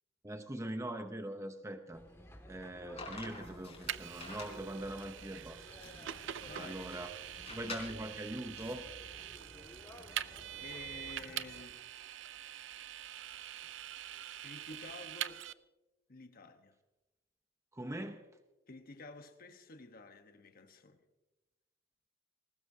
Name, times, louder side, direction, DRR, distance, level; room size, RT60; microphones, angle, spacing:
voice 1, 0.2-2.0 2.5-7.1 7.5-8.9 17.7-18.3, right 1 dB, 15° right, 0.8 m, -42 dB
sound 1, 1.9-11.6, left 1 dB, 15° left, 2.0 m, -55 dB
sound 2, 3.0-8.7, left 3 dB, 35° left, 4.4 m, -49 dB
Vehicle, 3.9-15.5, right 11 dB, 70° right, 0.5 m, -44 dB
voice 2, 6.4-6.8 10.1-10.3 10.6-11.8 14.4-15.5 16.1-16.8 18.7-21.0, left 3 dB, 50° left, 1.1 m, -51 dB
20.5 x 19.0 x 2.8 m
head